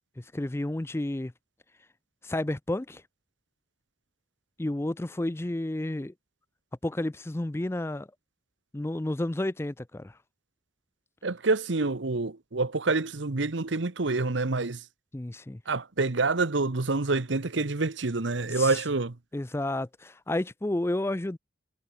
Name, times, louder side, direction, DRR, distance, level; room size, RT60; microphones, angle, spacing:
voice 1, 0.2-1.3 2.2-3.0 4.6-6.1 6.8-8.1 8.7-10.2 15.1-15.6 18.5-18.8 19.3-21.4, left 1 dB, 15° left, 0.4 m, -31 dB
voice 2, 11.2-14.8 15.7-19.1, right 3 dB, 75° right, 1.1 m, -27 dB
head